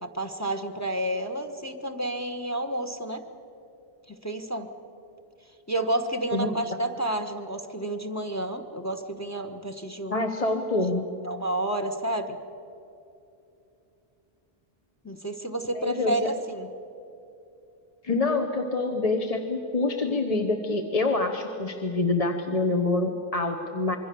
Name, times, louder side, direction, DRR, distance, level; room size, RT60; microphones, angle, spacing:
voice 1, 0.0-3.2 4.1-4.7 5.7-10.2 11.2-12.4 15.0-16.7, right 1 dB, 15° left, 7 dB, 1.2 m, -30 dB
voice 2, 10.1-11.0 15.7-16.3 18.0-24.0, left 3 dB, 35° left, 5 dB, 1.2 m, -26 dB
26.0 x 23.0 x 6.9 m, 2.8 s
omnidirectional pair, 1.1 m